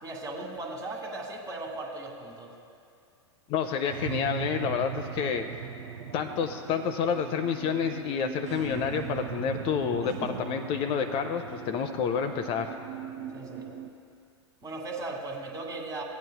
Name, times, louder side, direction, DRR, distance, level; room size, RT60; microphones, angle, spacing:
voice 1, 0.0-2.5 5.0-5.1 10.0-10.3 13.3-13.7 14.6-16.0, right 2 dB, 25° right, 1 dB, 1.6 m, -37 dB
voice 2, 3.5-5.5 6.1-12.8, left 7 dB, 40° left, 6 dB, 0.5 m, -29 dB
sound 1, 3.9-13.9, right 8 dB, 75° right, 0.6 m, -39 dB
16.0 x 9.1 x 2.2 m, 2.4 s
hypercardioid pair, 95°, 15 cm